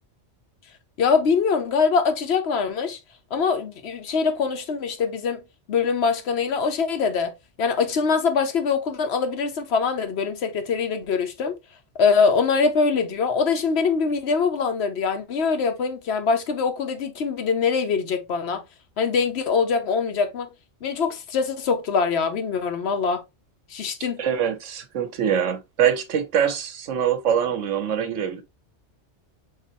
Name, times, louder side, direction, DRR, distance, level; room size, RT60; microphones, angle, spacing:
voice 1, 1.0-3.0 3.3-5.4 5.7-11.6 12.0-18.6 19.0-20.5 20.8-23.2 23.7-24.2, left 5 dB, 65° left, 1.0 m, -23 dB
voice 2, 24.2-28.4, right 8 dB, 90° right, 1.2 m, -24 dB
4.0 x 3.8 x 2.7 m
omnidirectional pair, 1.2 m